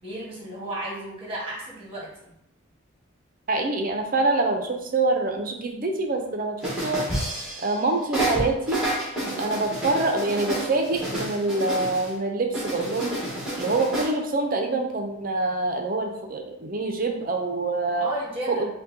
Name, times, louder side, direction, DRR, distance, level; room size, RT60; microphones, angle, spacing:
voice 1, 0.0-2.3 9.2-9.5 18.0-18.7, right 1 dB, 25° right, -5 dB, 1.3 m, -34 dB
voice 2, 3.5-7.0 7.6-8.8 9.4-13.2 13.6-18.1 18.5-18.7, right 2 dB, 45° right, 3 dB, 0.5 m, -25 dB
sound 1, 6.6-7.8 8.1-12.1 12.5-14.1, right 1 dB, 5° right, 1.2 m, -29 dB
5.1 x 2.2 x 2.7 m, 0.78 s
head